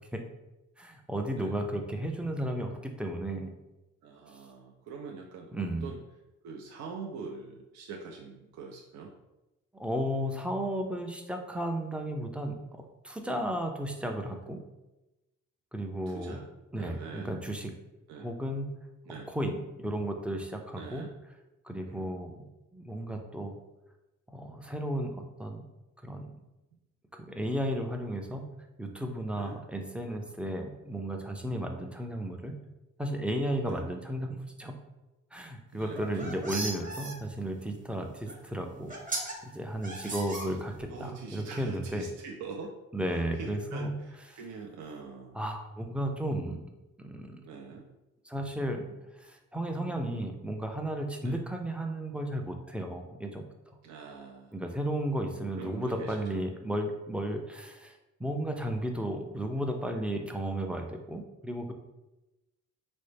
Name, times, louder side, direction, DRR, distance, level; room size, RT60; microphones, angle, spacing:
voice 1, 0.8-3.5 5.5-5.9 9.7-14.6 15.7-16.4 16.7-17.7 18.2-18.7 19.3-21.1 21.6-22.4 22.7-23.5 24.3-25.6 26.0-26.3 27.1-28.5 28.8-32.5 33.0-34.7 35.3-42.0 42.9-43.9 45.4-46.6 47.0-47.4 48.3-48.9 49.2-53.4 54.5-57.9 58.2-61.7, right 1 dB, 5° right, 3 dB, 0.4 m, -34 dB
voice 2, 1.3-1.6 4.0-6.0 6.4-9.1 13.2-13.6 16.1-16.4 16.8-17.3 18.1-18.3 19.0-19.3 20.7-21.1 21.9-22.2 29.3-29.6 33.6-33.8 35.7-36.4 38.2-38.4 39.9-40.6 40.9-42.8 43.1-45.4 47.4-47.9 49.7-50.0 51.2-51.4 53.8-54.6 55.5-56.4, right 5 dB, 70° right, 0 dB, 0.5 m, -44 dB
sound 1, 35.8-37.1 38.3-38.4 38.9-39.3 39.8-40.9, right 2 dB, 25° right, 0.9 m, -36 dB
4.0 x 2.0 x 3.2 m, 1.0 s
cardioid pair, 90°, 30 cm